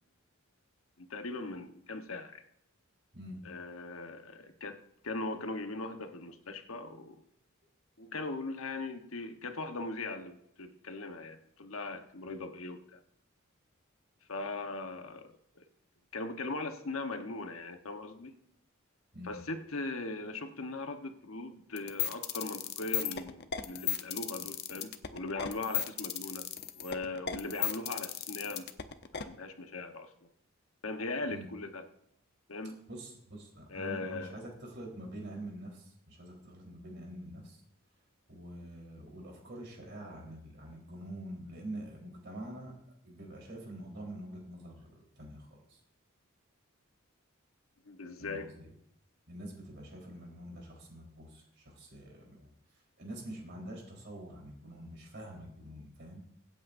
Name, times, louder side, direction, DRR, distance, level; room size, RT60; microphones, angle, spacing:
voice 1, 1.0-2.4 3.4-7.2 8.0-13.0 14.3-15.6 16.1-18.3 19.2-26.5 26.7-28.7 29.1-30.1 30.8-31.9 32.5-32.8 33.7-34.3 47.9-48.5, left 3 dB, 80° left, 6 dB, 1.2 m, -39 dB
sound 1, 21.8-29.2, left 10 dB, 55° left, 0.8 m, -34 dB
voice 2, 32.9-37.6 38.3-42.8 43.0-45.8 48.2-48.7 49.3-52.5 53.0-56.2, right 1 dB, 55° right, -1 dB, 4.0 m, -46 dB
24.0 x 8.7 x 2.6 m, 0.75 s
head